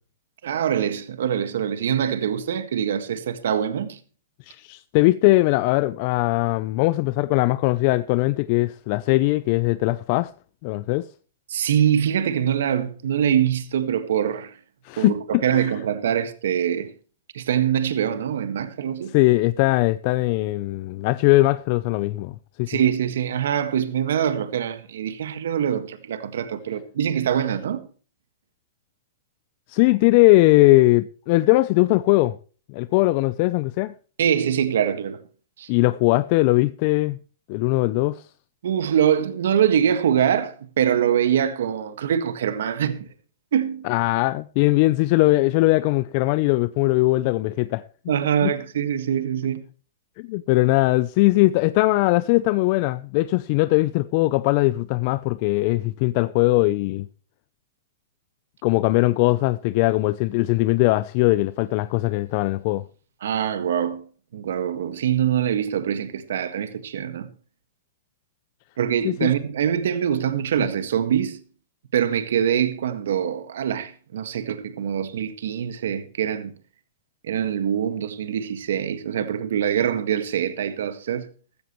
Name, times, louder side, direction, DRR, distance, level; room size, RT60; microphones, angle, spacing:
voice 1, 0.4-4.0 11.5-14.5 15.0-16.9 17.3-19.1 22.7-27.8 34.2-35.2 35.6-35.7 38.6-43.1 43.5-43.9 48.1-49.6 63.2-64.1 64.3-67.3 68.8-71.4 71.9-76.5 77.2-81.3, right 9 dB, 75° right, 1.7 m, -24 dB
voice 2, 4.5-10.3 10.6-11.1 14.8-15.7 19.1-22.7 29.7-32.4 32.7-33.9 35.7-37.2 37.5-38.2 43.8-47.8 48.4-48.5 50.2-57.1 58.6-62.8 69.0-69.3, left 19 dB, 45° left, 0.5 m, -20 dB
15.0 x 14.0 x 3.1 m
hypercardioid pair, 145°, 0 cm